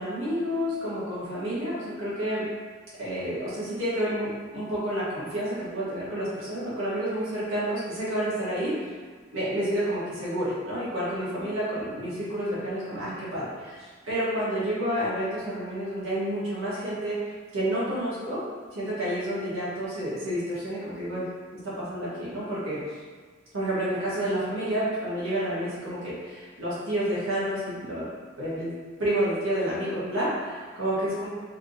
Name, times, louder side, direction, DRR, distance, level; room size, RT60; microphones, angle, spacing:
voice 1, 0.0-2.4 3.0-8.8 9.3-17.2 17.5-18.4 18.7-21.2 21.6-22.8 23.5-28.1 28.4-28.7 29.0-31.3, right 1 dB, 85° right, -9 dB, 1.3 m, -29 dB
3.3 x 2.9 x 2.6 m, 1.5 s
head